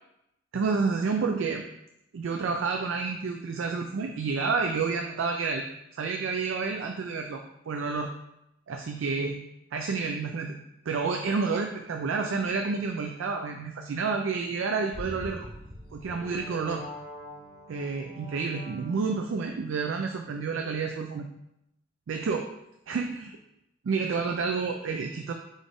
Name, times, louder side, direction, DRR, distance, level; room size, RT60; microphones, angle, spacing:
voice 1, 0.5-1.6 2.1-5.6 5.9-8.1 8.7-9.4 9.7-10.6 10.9-15.5 15.9-16.8 17.7-21.2 22.1-22.5 22.9-23.3 23.8-25.3, right 4 dB, 80° right, 4 dB, 0.4 m, -29 dB
sound 1, 14.9-19.3, equal, 30° left, 1.8 m, -43 dB
4.0 x 3.5 x 3.7 m, 0.83 s
head